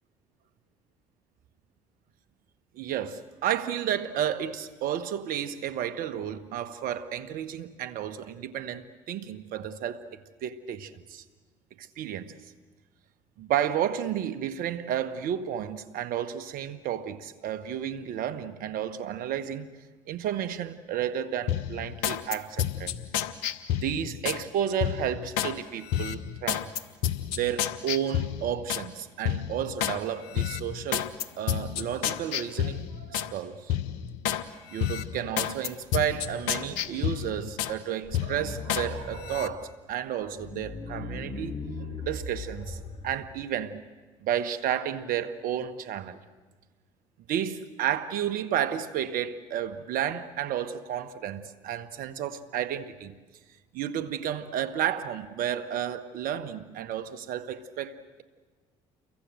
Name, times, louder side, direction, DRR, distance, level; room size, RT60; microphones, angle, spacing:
voice 1, 2.7-10.1 10.4-11.2 11.8-12.3 13.4-19.7 20.1-22.9 23.7-26.7 27.3-31.1 31.4-33.8 34.7-41.6 42.0-42.8 43.0-43.8 44.2-46.2 47.3-53.1 53.7-58.2, right 10 dB, 65° right, 1.7 m, -32 dB
sound 1, 21.5-24.4 24.8-25.5 25.9-28.9 29.3-30.0 30.3-33.3 33.7-34.4 34.8-37.8 38.1-38.9 39.2-39.5, left 10 dB, 80° left, 1.2 m, -30 dB
sound 2, 35.8-37.3 37.7-37.8 38.0-39.6 40.2-43.3, left 3 dB, 35° left, 7.0 m, -40 dB
29.5 x 23.5 x 7.9 m
hypercardioid pair, 60°, 15 cm